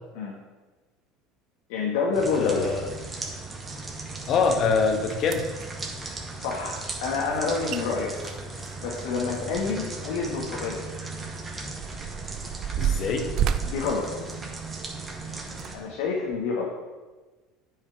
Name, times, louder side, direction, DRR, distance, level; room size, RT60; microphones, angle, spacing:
voice 1, 1.7-2.7 6.4-8.1 8.8-10.9 13.6-14.1 15.7-16.7, left 4 dB, 75° left, -2 dB, 1.4 m, -28 dB
sound 1, 2.1-15.8, right 3 dB, 25° right, 1.8 m, -37 dB
voice 2, 2.4-2.9 4.3-5.4 12.8-13.3, left 5 dB, 50° left, 4 dB, 1.4 m, -24 dB
sound 2, 4.8-4.9 5.2-5.7 7.4-7.5 7.7-7.8 8.2-10.0 10.3-10.4 11.1-14.9 15.5-15.7 16.3-16.4, right 9 dB, 55° right, 0.5 m, -31 dB
9.2 x 5.7 x 4.5 m, 1.3 s
hypercardioid pair, 75°, 0 cm